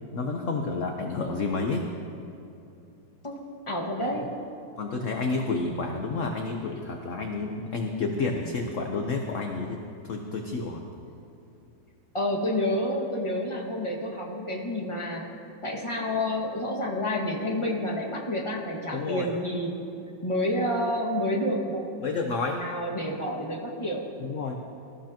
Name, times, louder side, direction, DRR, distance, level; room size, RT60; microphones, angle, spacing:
voice 1, 0.1-1.9 4.8-10.8 18.9-19.3 22.0-22.7 24.2-24.6, left 3 dB, 50° left, 2 dB, 1.1 m, -30 dB
voice 2, 3.2-4.3 12.1-15.3 15.6-21.8 22.6-24.0, left 1 dB, 15° left, -2 dB, 1.8 m, -29 dB
23.5 x 14.0 x 2.9 m, 2.8 s
omnidirectional pair, 2.0 m